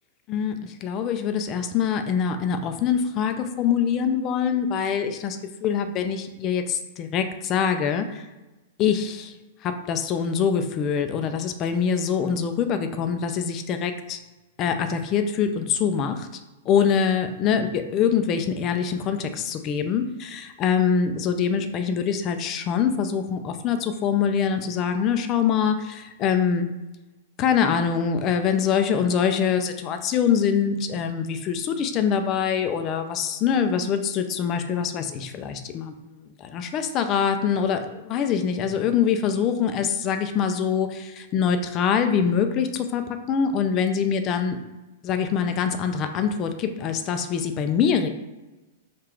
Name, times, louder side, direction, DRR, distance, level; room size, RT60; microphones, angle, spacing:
voice 1, 0.3-8.3 8.8-9.3 9.6-14.2 14.6-16.3 16.7-26.7 27.4-43.0 43.3-44.6 45.0-48.1, left 7 dB, 35° left, 7 dB, 0.4 m, -24 dB
3.7 x 2.4 x 4.4 m, 1.1 s
hypercardioid pair, 115°, 0 cm